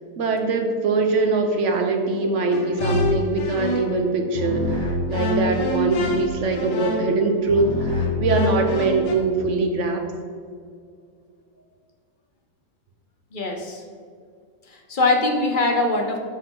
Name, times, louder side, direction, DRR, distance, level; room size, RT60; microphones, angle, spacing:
voice 1, 0.2-10.1, right 3 dB, 50° right, 4 dB, 1.0 m, -22 dB
sound 1, 2.5-4.0 4.3-9.1, left 2 dB, 85° left, 1.7 m, -26 dB
voice 2, 13.3-13.8 14.9-16.2, left 2 dB, 45° left, 3 dB, 0.7 m, -21 dB
10.0 x 5.5 x 3.8 m, 2.2 s
omnidirectional pair, 1.9 m